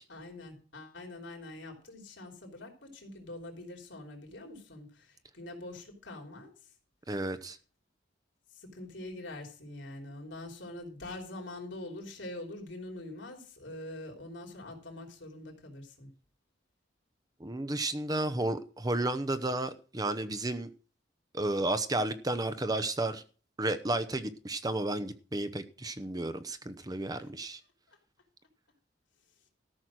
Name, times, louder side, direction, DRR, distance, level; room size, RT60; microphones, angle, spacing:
voice 1, 0.1-6.7 8.5-16.1 27.9-28.0, left 2 dB, 70° left, 3.5 m, -44 dB
voice 2, 7.1-7.6 17.4-20.7 21.3-23.2 23.6-27.6, right 2 dB, 20° right, 0.8 m, -32 dB
13.5 x 6.3 x 6.1 m
head